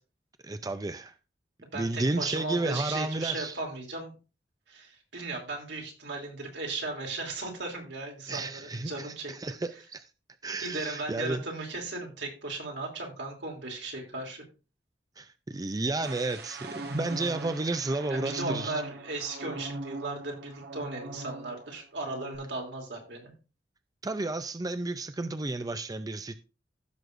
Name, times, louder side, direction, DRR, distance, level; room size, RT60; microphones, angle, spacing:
voice 1, 0.4-1.1 1.7-3.6 8.3-10.1 10.4-11.4 15.2-18.8 24.0-26.4, right 2 dB, 20° right, 0.5 m, -32 dB
voice 2, 1.7-4.1 4.7-9.3 10.6-14.4 18.1-23.3, right 3 dB, 80° right, 3.0 m, -36 dB
sound 1, 16.0-21.7 22.0-22.4, right 1 dB, 65° right, 1.4 m, -40 dB
15.5 x 6.3 x 2.6 m
head